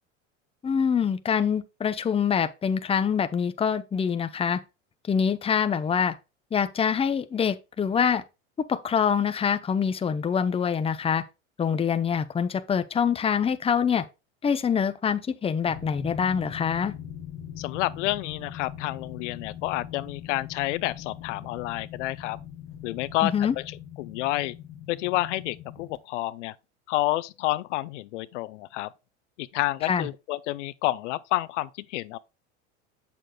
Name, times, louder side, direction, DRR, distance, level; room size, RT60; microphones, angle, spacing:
voice 1, 0.6-4.6 5.1-6.1 6.5-8.2 8.7-11.2 11.6-14.0 14.4-16.9 23.2-23.5 29.8-30.1, left 7 dB, 15° left, 0.7 m, -25 dB
sound 1, 15.6-26.0, left 9 dB, 35° left, 1.3 m, -41 dB
voice 2, 17.6-22.4 22.8-23.6 24.0-24.6 24.9-26.5 26.9-28.9 29.4-32.2, left 17 dB, 80° left, 0.6 m, -29 dB
7.6 x 6.8 x 2.3 m
supercardioid pair, 105°, 35 cm